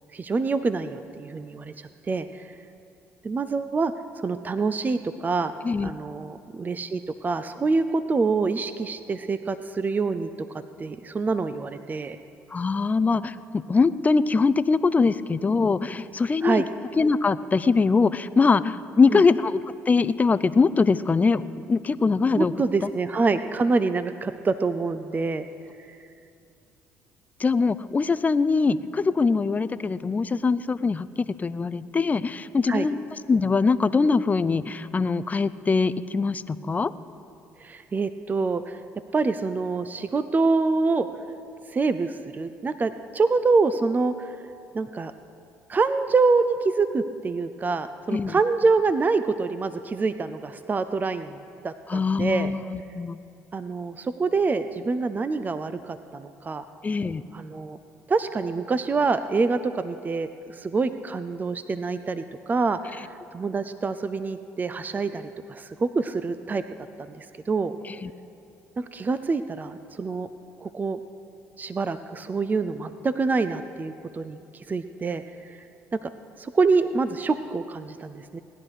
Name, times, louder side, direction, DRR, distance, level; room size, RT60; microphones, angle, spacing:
voice 1, 0.1-2.5 3.2-5.5 5.8-10.3 10.8-12.2 16.4-16.7 19.1-19.2 22.4-25.5 25.9-26.0 32.7-32.9 37.6-38.8 39.1-41.1 41.7-44.3 44.7-45.1 45.7-51.4 51.6-52.5 53.5-56.7 57.3-57.8 58.1-66.6 67.0-67.8 68.8-70.3 70.6-71.0 71.6-75.6 76.0-76.1 76.4-78.4, right 4 dB, 30° right, 11 dB, 0.5 m, -26 dB
voice 2, 12.5-16.6 16.9-22.5 22.8-22.9 27.4-33.0 33.3-36.9 48.1-48.4 51.9-53.2 56.8-57.2 67.8-68.1, left 4 dB, 25° left, 15 dB, 0.5 m, -22 dB
18.0 x 10.5 x 4.9 m, 2.5 s
supercardioid pair, 75°, 6 cm